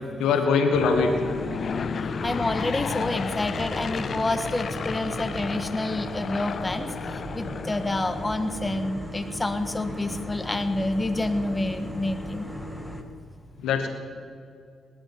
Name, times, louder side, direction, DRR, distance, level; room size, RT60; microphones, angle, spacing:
voice 1, 0.2-1.1 13.6-13.9, left 5 dB, 80° left, 5 dB, 1.9 m, -22 dB
sound 1, 0.7-13.0, equal, ahead, 2.1 m, -37 dB
Aircraft / Engine, 0.8-8.8, left 6 dB, 60° left, 0.5 m, -33 dB
voice 2, 2.2-12.5, left 2 dB, 25° left, 9 dB, 1.5 m, -28 dB
18.0 x 10.5 x 5.9 m, 2.3 s
supercardioid pair, 55°, 0 cm